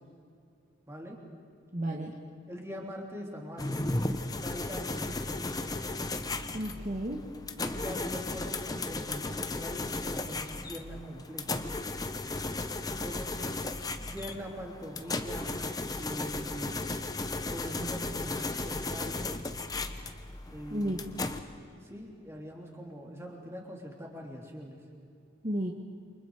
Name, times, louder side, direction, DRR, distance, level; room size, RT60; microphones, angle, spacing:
voice 1, 0.9-1.2 2.5-5.4 7.6-11.6 13.0-13.8 14.1-15.5 16.0-17.0 17.5-19.4 20.5-21.1 21.8-24.8, equal, 15° right, 0 dB, 3.4 m, -42 dB
voice 2, 1.7-2.1 6.5-7.2 20.7-21.0 25.4-25.7, right 1 dB, 35° right, 0 dB, 1.5 m, -32 dB
sound 1, 3.6-21.4, left 2 dB, 20° left, 0.9 m, -35 dB
28.5 x 27.5 x 5.0 m, 2.4 s
head